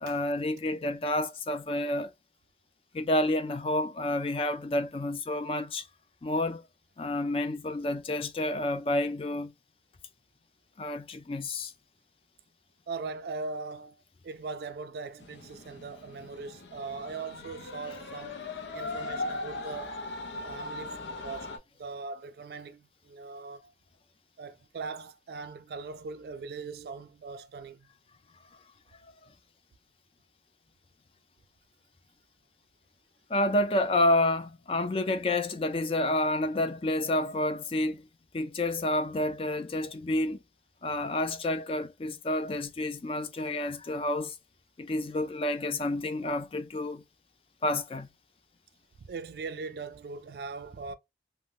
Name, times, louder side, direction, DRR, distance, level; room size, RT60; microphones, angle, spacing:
voice 1, 0.0-2.1 2.9-5.9 6.2-6.6 7.0-9.5 10.8-11.7 33.3-38.0 38.3-40.4 40.8-44.3 44.8-47.0 47.6-48.1, left 1 dB, 30° left, 0.4 m, -29 dB
voice 2, 12.9-20.0 20.4-23.7 24.4-27.9 49.0-50.9, right 4 dB, 60° right, 0.3 m, -40 dB
sound 1, 15.2-21.6, left 2 dB, 90° left, 0.6 m, -39 dB
2.7 x 2.1 x 3.2 m
head